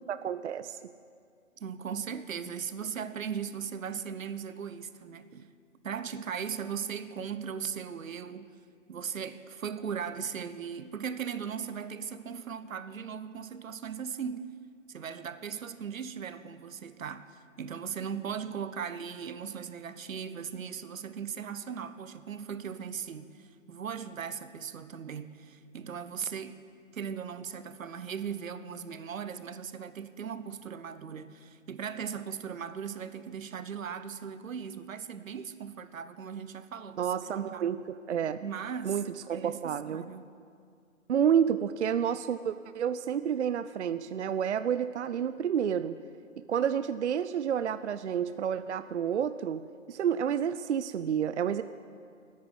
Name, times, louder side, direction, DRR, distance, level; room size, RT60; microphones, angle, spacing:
voice 1, 0.1-0.9 37.0-38.4 38.8-40.1 41.1-46.0 46.5-49.6 49.9-51.6, right 8 dB, 60° right, 12 dB, 0.5 m, -30 dB
voice 2, 1.6-5.5 5.8-8.5 8.9-14.5 14.9-26.6 26.9-37.7 38.4-39.0 39.3-40.3, right 7 dB, 90° right, 13 dB, 0.9 m, -38 dB
9.7 x 9.6 x 9.9 m, 2.3 s
hypercardioid pair, 175°, 39 cm